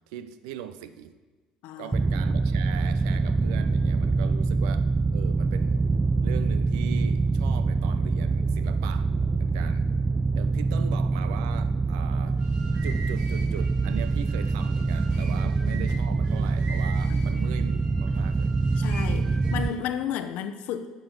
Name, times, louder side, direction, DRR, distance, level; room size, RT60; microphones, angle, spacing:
voice 1, 0.1-1.1 1.8-5.9 6.2-9.1 9.4-9.9 10.3-12.4 12.8-18.6 19.2-19.5, right 10 dB, 80° right, 13 dB, 0.6 m, -40 dB
voice 2, 1.6-1.9 15.3-15.4 15.7-15.9 17.1-17.3 18.8-20.9, left 9 dB, 70° left, 10 dB, 0.7 m, -33 dB
sound 1, 1.9-19.7, right 3 dB, 20° right, 0.4 m, -25 dB
sound 2, 12.2-19.9, right 3 dB, 55° right, 3.3 m, -44 dB
9.2 x 5.3 x 7.1 m, 1.3 s
hypercardioid pair, 75°, 3 cm